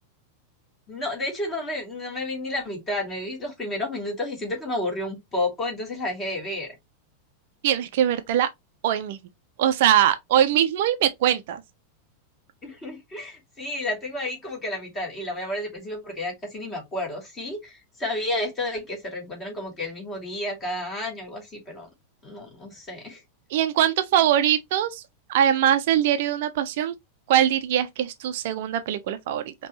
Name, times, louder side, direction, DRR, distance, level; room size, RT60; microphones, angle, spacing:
voice 1, 0.9-6.7 12.6-21.9 22.2-23.2, left 1 dB, 20° left, 2.8 m, -31 dB
voice 2, 7.6-8.5 8.8-9.2 9.6-11.6 23.5-25.0 25.3-26.9 27.3-29.5, right 10 dB, 50° right, 0.6 m, -22 dB
5.1 x 3.0 x 3.0 m
figure-of-eight pair, 90°, 0 cm